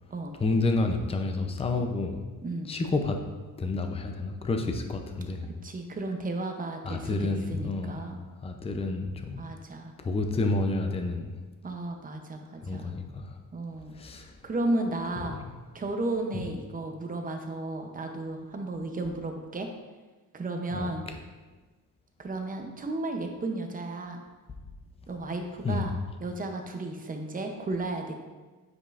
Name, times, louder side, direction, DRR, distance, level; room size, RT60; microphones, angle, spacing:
voice 1, 0.4-2.2 2.7-3.2 3.6-5.5 6.8-8.0 8.4-9.4 10.0-11.4 12.6-13.3 14.0-14.3 16.3-16.4 20.7-20.9 25.6-25.9, left 3 dB, 15° left, 5 dB, 0.5 m, -29 dB
voice 2, 5.6-8.2 9.4-9.9 11.6-12.9 13.5-13.9 14.4-15.4 15.7-19.7 20.3-21.1 22.2-24.2 25.1-28.2, right 2 dB, 25° right, 4 dB, 0.6 m, -33 dB
8.2 x 5.1 x 2.5 m, 1.3 s
cardioid pair, 140°, 36 cm